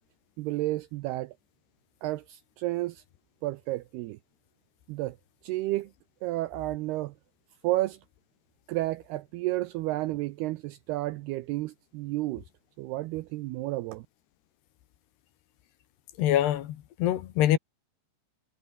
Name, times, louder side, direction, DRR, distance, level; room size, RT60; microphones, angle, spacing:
voice 1, 0.4-1.3 2.0-3.0 3.4-4.2 4.9-5.2 5.4-5.9 6.2-7.1 7.6-8.0 8.7-12.4 12.8-14.1, right 18 dB, 90° right, 2.3 m, -31 dB
voice 2, 16.2-17.6, left 12 dB, 70° left, 3.4 m, -25 dB
omnidirectional pair, 5.3 m